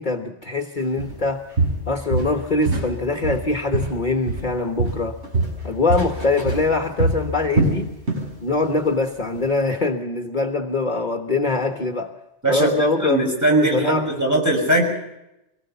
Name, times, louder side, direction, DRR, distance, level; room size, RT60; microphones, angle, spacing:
voice 1, 0.0-1.4 1.9-5.2 5.6-7.9 8.4-12.1 12.5-14.0, left 3 dB, 40° left, 5 dB, 1.4 m, -23 dB
Walk footsteps, 1.0-1.2 1.6-2.9 3.2-4.5 4.8-8.3 8.6-8.9 9.3-9.4, right 2 dB, 70° right, 6.1 m, -24 dB
voice 2, 13.0-14.8, right 2 dB, 15° right, 0 dB, 6.3 m, -20 dB
23.5 x 19.0 x 6.9 m, 0.88 s
omnidirectional pair, 1.2 m